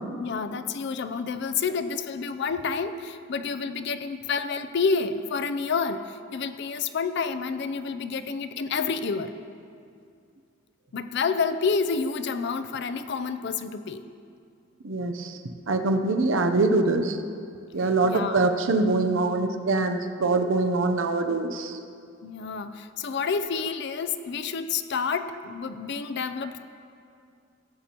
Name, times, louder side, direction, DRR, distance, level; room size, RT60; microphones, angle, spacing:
voice 1, 0.2-9.4 10.9-14.0 17.8-18.4 22.2-26.6, left 5 dB, 55° left, 10 dB, 0.5 m, -29 dB
voice 2, 14.8-15.3 15.7-17.2 17.7-21.7, right 3 dB, 70° right, 6 dB, 0.7 m, -24 dB
17.0 x 8.4 x 2.9 m, 2.4 s
head